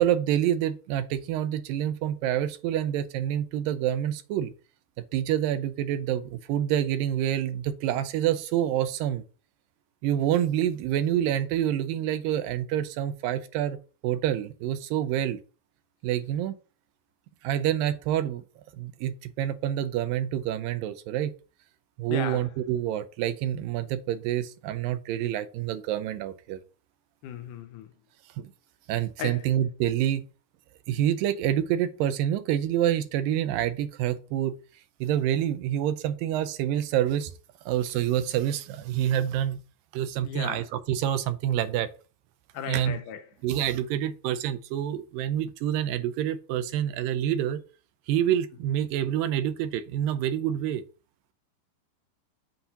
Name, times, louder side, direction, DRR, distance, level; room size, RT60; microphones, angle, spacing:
voice 1, 0.0-4.5 5.1-9.2 10.0-13.8 14.0-15.4 16.0-16.6 17.4-18.4 18.7-21.3 22.0-26.6 28.4-28.5 28.9-30.3 30.9-34.6 35.0-37.3 37.7-39.6 39.9-41.9 42.7-43.0 43.4-47.6 48.1-50.8, right 11 dB, 80° right, 2.3 m, -27 dB
voice 2, 22.1-22.5 27.2-27.9 29.2-29.5 40.2-40.6 42.5-43.2, left 9 dB, 75° left, 2.0 m, -36 dB
7.8 x 2.8 x 5.7 m
omnidirectional pair, 4.0 m